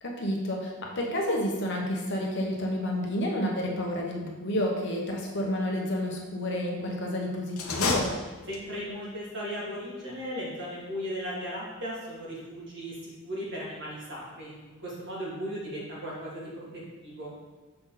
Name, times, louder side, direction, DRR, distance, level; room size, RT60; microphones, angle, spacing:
voice 1, 0.0-8.1, left 1 dB, 50° left, -1 dB, 1.0 m, -30 dB
sound 1, 7.5-8.9, left 3 dB, 75° left, 0.8 m, -30 dB
voice 2, 8.5-17.3, equal, 50° right, -5 dB, 1.9 m, -37 dB
6.7 x 4.1 x 3.9 m, 1.2 s
head